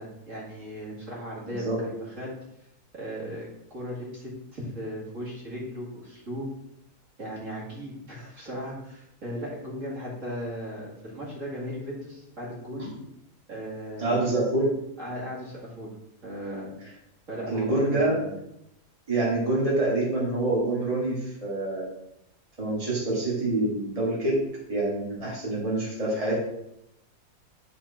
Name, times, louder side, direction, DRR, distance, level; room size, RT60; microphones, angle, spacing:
voice 1, 0.0-2.3 2.9-6.5 7.2-12.9 13.5-14.3 15.0-15.9 16.2-16.7 17.3-18.3, equal, 50° right, -6 dB, 2.4 m, -37 dB
voice 2, 1.5-1.9 12.8-13.0 14.0-14.7 16.8-16.9 17.5-18.2 19.1-21.8 22.6-26.3, right 2 dB, 20° right, -5 dB, 2.1 m, -26 dB
9.7 x 3.9 x 4.3 m, 0.80 s
omnidirectional pair, 1.7 m